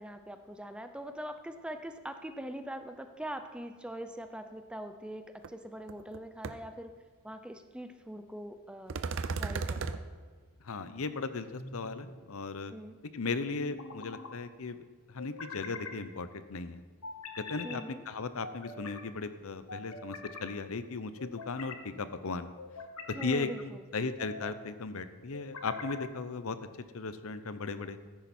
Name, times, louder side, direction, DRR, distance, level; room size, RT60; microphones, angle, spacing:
voice 1, 0.0-6.9 7.2-9.0 9.4-10.0 12.7-13.0 17.6-18.0 23.1-23.8, equal, 5° right, 8 dB, 0.6 m, -42 dB
sound 1, 5.4-5.5 5.9-6.2 6.4-6.5 8.9-10.0, right 4 dB, 60° right, 0.6 m, -34 dB
voice 2, 10.6-12.7 13.1-16.8 17.4-22.5 23.1-26.6 26.9-28.0, left 4 dB, 65° left, 12 dB, 0.7 m, -37 dB
sound 2, 11.5-12.2 13.6-14.3 15.2-16.0 17.0-17.8 18.4-19.0 19.7-20.5 21.2-21.8 22.6-23.5 24.1-24.6 25.3-26.1, left 3 dB, 85° left, 1.4 m, -44 dB
14.5 x 10.5 x 4.3 m, 1.5 s
head